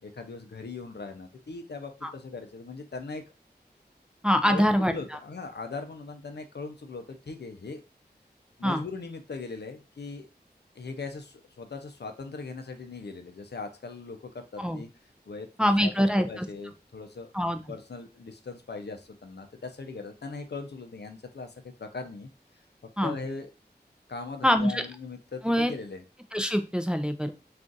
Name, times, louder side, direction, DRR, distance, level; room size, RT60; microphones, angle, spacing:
voice 1, 0.0-3.2 4.5-7.8 8.6-10.3 10.8-14.9 15.3-15.5 15.8-17.3 17.7-22.3 23.0-23.5 24.1-26.0, left 4 dB, 75° left, 6 dB, 0.5 m, -39 dB
voice 2, 4.2-4.9 8.6-8.8 14.6-14.8 15.6-16.5 17.3-17.6 23.0-23.1 24.4-24.8 25.4-25.7 26.3-27.3, equal, 5° right, 7 dB, 0.3 m, -24 dB
2.4 x 2.4 x 3.8 m, 0.31 s
wide cardioid pair, 45°, 17 cm